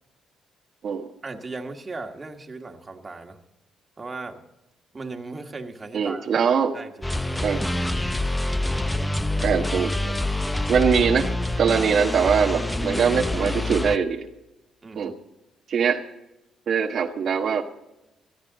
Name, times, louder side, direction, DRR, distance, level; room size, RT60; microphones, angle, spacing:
voice 1, 1.2-3.4 4.0-4.4 4.9-6.4 6.7-7.1 7.5-7.6 14.8-15.1, right 3 dB, 25° right, 3 dB, 1.9 m, -37 dB
voice 2, 5.9-6.7 7.4-7.6 9.4-10.1 10.7-11.3 11.6-14.3 15.0-15.1 15.7-16.0 16.7-17.6, right 6 dB, 60° right, 2 dB, 1.2 m, -22 dB
sound 1, 7.0-14.0, left 1 dB, 10° left, 0.7 m, -26 dB
18.5 x 13.5 x 3.9 m, 0.95 s
cardioid pair, 90°, 0 cm